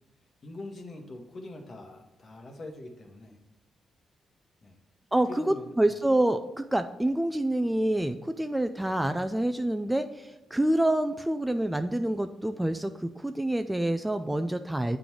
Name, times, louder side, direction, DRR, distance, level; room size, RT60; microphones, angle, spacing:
voice 1, 0.4-3.4 4.6-4.8 5.3-6.0, left 2 dB, 45° left, 2 dB, 1.3 m, -43 dB
voice 2, 5.1-15.0, right 1 dB, 10° right, 8 dB, 0.3 m, -27 dB
8.5 x 3.8 x 4.6 m, 1.0 s
cardioid pair, 110°, 0 cm